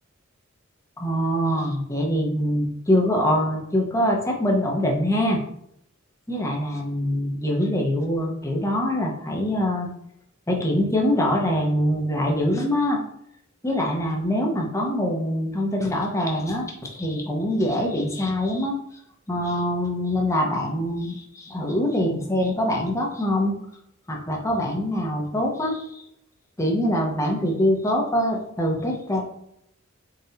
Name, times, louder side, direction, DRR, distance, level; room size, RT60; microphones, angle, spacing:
voice 1, 1.0-5.4 6.3-9.9 10.5-13.0 13.6-18.8 19.3-23.6 24.1-26.0 26.6-29.2, equal, 15° left, 0 dB, 0.7 m, -24 dB
4.1 x 2.6 x 3.9 m, 0.74 s
head